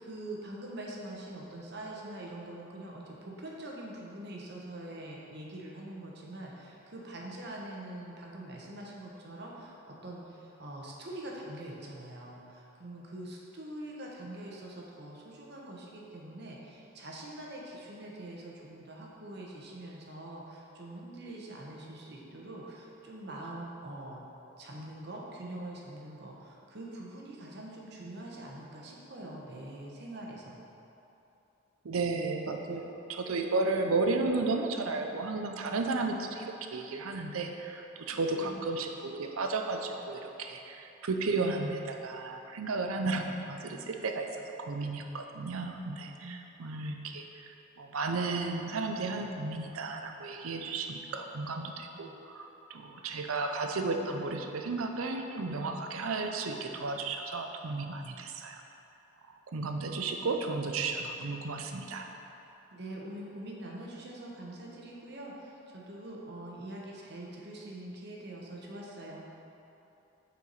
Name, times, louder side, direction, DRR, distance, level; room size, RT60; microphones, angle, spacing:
voice 1, 0.0-24.2 24.6-30.6 35.8-36.2 38.3-38.7 46.2-46.5 62.7-69.3, right 1 dB, 50° right, -2 dB, 1.0 m, -44 dB
voice 2, 31.8-36.4 36.7-44.3 44.6-47.2 47.8-58.6 59.5-62.1, right 3 dB, 90° right, 4 dB, 0.6 m, -33 dB
8.4 x 4.6 x 4.0 m, 3.0 s
head